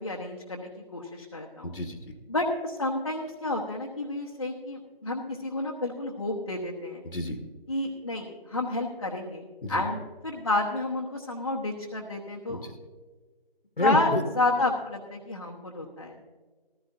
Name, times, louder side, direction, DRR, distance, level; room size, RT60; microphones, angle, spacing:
voice 1, 0.0-1.7 2.3-7.0 7.7-9.4 9.7-12.7 13.8-14.1 14.3-16.2, left 2 dB, 30° left, -3 dB, 1.0 m, -30 dB
voice 2, 1.6-2.0 7.0-7.4 9.6-9.8 12.5-12.6 13.8-14.2, left 1 dB, 70° left, 5 dB, 1.4 m, -29 dB
15.0 x 14.0 x 2.6 m, 1.4 s
figure-of-eight pair, 160°, 30 cm